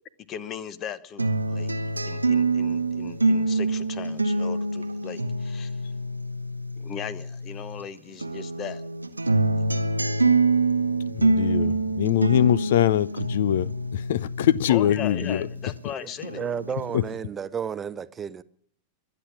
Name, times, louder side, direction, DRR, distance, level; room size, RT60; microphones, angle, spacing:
voice 1, 0.3-1.7 2.0-5.8 6.8-8.8 9.6-9.8 14.7-16.5, left 8 dB, 30° left, 1.0 m, -38 dB
sound 1, 1.2-7.8 8.2-15.8 16.2-17.2, right 2 dB, 80° right, 0.9 m, -26 dB
voice 2, 11.1-15.5 16.9-17.0, left 11 dB, 60° left, 0.5 m, -23 dB
voice 3, 16.0-18.4, right 7 dB, 20° right, 0.6 m, -32 dB
22.5 x 8.9 x 6.1 m
figure-of-eight pair, 90°, 0 cm